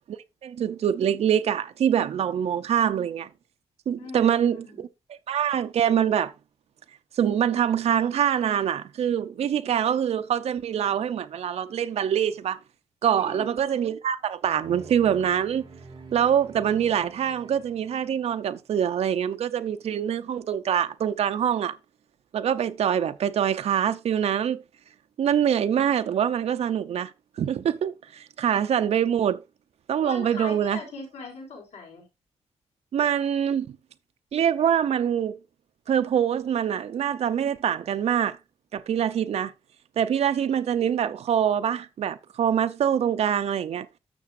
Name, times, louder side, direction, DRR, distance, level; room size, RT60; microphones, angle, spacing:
voice 1, 0.4-3.3 3.9-4.9 5.3-6.3 7.1-12.6 13.0-15.7 16.1-21.7 22.3-24.6 25.2-27.1 27.4-29.4 29.9-30.8 32.9-33.7 34.3-35.4 35.9-38.4 38.7-39.5 40.0-43.9, right 9 dB, 70° right, 0.6 m, -24 dB
voice 2, 4.0-4.8 13.2-13.5 30.0-32.0, left 3 dB, 85° left, 4.1 m, -40 dB
sound 1, 14.6-18.4, right 3 dB, 40° right, 2.2 m, -46 dB
12.5 x 6.7 x 2.5 m
wide cardioid pair, 145°, 11 cm